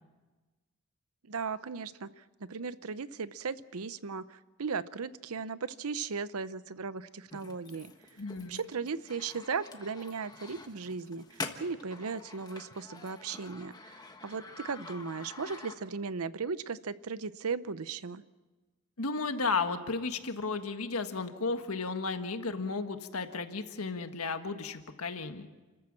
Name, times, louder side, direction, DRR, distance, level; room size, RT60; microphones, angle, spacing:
voice 1, 1.3-7.9 8.5-18.2, right 5 dB, 85° right, 15 dB, 0.7 m, -37 dB
sound 1, 7.3-16.1, left 3 dB, 20° left, 1.3 m, -47 dB
voice 2, 8.2-8.6 19.0-25.5, left 4 dB, 85° left, 7 dB, 1.5 m, -34 dB
29.5 x 14.0 x 7.5 m, 1.2 s
head